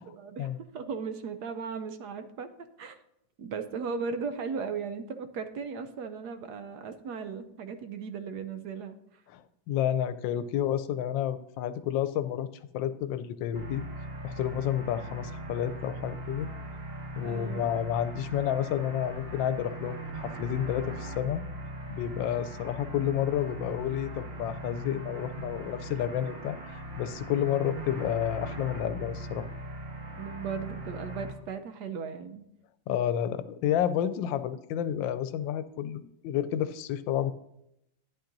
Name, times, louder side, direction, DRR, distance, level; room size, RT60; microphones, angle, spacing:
voice 1, 0.1-2.5 2.8-3.0 3.4-9.2 17.2-17.7 30.2-32.4, right 5 dB, 70° right, 9 dB, 1.1 m, -37 dB
voice 2, 9.3-12.5 12.7-13.8 14.2-16.5 17.2-21.4 21.9-29.5 32.9-37.3, left 10 dB, 90° left, 12 dB, 1.3 m, -30 dB
sound 1, 13.5-31.3, right 1 dB, 45° right, 1.7 m, -40 dB
11.5 x 10.0 x 2.6 m, 0.79 s
omnidirectional pair, 2.0 m